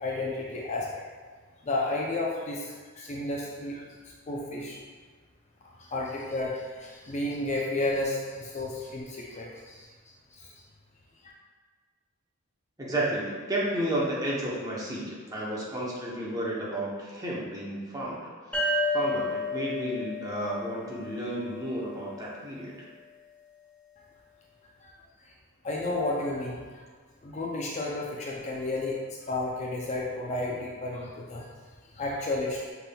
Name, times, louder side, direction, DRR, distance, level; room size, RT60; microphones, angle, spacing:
voice 1, 0.0-1.0 1.6-4.8 5.8-9.9 10.3-10.5 24.8-24.9 25.6-26.8 27.2-31.5 31.9-32.7, left 2 dB, 30° left, -3 dB, 0.4 m, -32 dB
voice 2, 12.8-22.9, right 1 dB, 15° right, -5 dB, 0.8 m, -32 dB
sound 1, 18.5-22.0, left 2 dB, 5° left, 1.0 m, -31 dB
5.7 x 3.5 x 2.2 m, 1.5 s
head